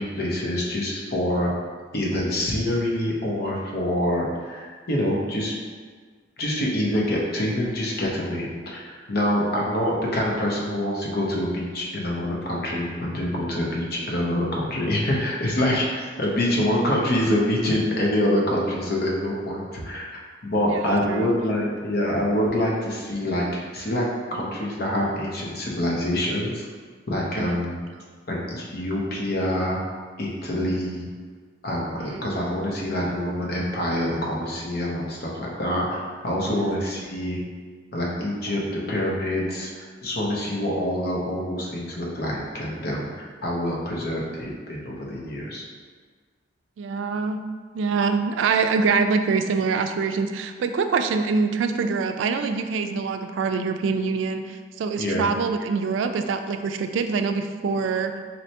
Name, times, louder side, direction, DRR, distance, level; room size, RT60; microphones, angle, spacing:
voice 1, 0.0-1.5 1.9-5.5 6.4-20.1 20.4-24.1 24.3-26.6 27.1-27.8 28.3-29.8 30.2-31.1 31.6-37.4 37.9-45.6 55.0-55.3, left 1 dB, 55° left, -3 dB, 0.8 m, -26 dB
voice 2, 20.6-21.3 27.3-27.6 32.0-32.4 36.5-36.8 46.8-47.4 47.7-58.1, right 5 dB, 85° right, 7 dB, 0.3 m, -25 dB
4.1 x 2.9 x 3.2 m, 1.6 s
head